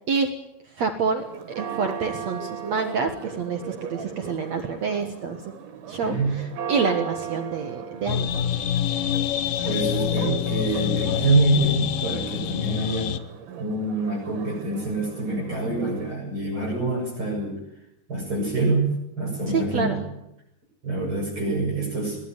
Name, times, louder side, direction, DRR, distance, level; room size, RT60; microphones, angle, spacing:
voice 1, 0.8-1.2 1.6-5.4 5.9-8.3 19.5-20.1, right 5 dB, 65° right, 6 dB, 1.7 m, -27 dB
Church bell, 1.1-16.1, right 8 dB, 85° right, 5.0 m, -38 dB
voice 2, 6.0-6.4 9.7-13.1 13.6-17.6 18.1-18.9 19.2-20.0 20.8-22.2, right 2 dB, 25° right, -1 dB, 8.2 m, -25 dB
sound 1, 8.1-13.2, left 11 dB, 75° left, 2.1 m, -26 dB
22.0 x 19.0 x 9.5 m, 0.82 s
omnidirectional pair, 5.1 m